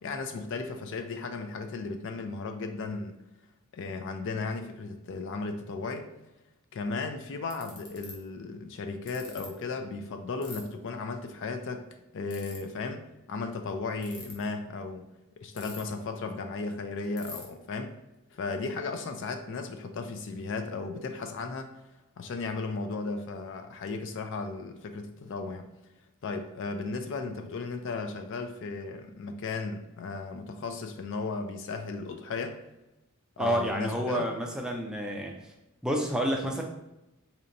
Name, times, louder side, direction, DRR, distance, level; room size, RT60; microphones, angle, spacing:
voice 1, 0.0-3.1 3.7-6.1 6.7-11.8 12.1-13.0 13.3-15.1 15.4-17.9 18.3-21.7 22.2-25.7 26.2-32.6 33.4-34.3, left 3 dB, 60° left, 7 dB, 0.4 m, -35 dB
Ratchet pawl, 7.5-8.1 9.1-9.5 10.4-10.6 12.3-12.6 13.9-14.3 15.6-16.0 16.4-16.5 16.7-16.8 17.2-17.4, left 4 dB, 90° left, 1.0 m, -43 dB
voice 2, 33.4-35.3 35.8-36.6, equal, 5° right, 1 dB, 0.4 m, -29 dB
4.2 x 2.8 x 2.6 m, 0.95 s
head